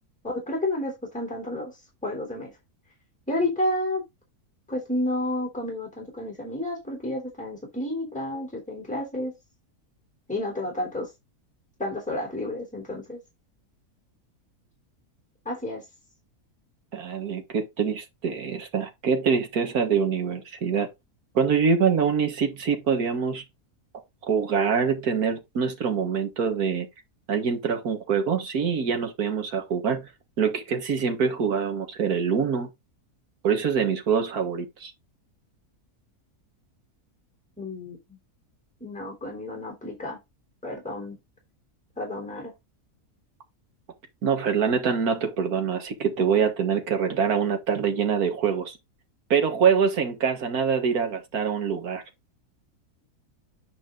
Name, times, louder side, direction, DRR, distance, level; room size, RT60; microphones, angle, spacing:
voice 1, 0.2-1.7 2.0-2.5 3.3-4.0 4.7-9.3 10.3-11.1 11.8-13.2 15.5-15.8 37.6-38.0 38.8-40.2 40.6-41.2 42.0-42.5, left 1 dB, 5° left, 3.6 m, -30 dB
voice 2, 16.9-20.9 21.3-23.4 24.2-26.9 27.3-30.0 30.4-32.7 33.4-34.9 44.2-48.8 49.3-52.0, right 6 dB, 75° right, 2.0 m, -25 dB
9.2 x 5.2 x 3.8 m
omnidirectional pair, 1.6 m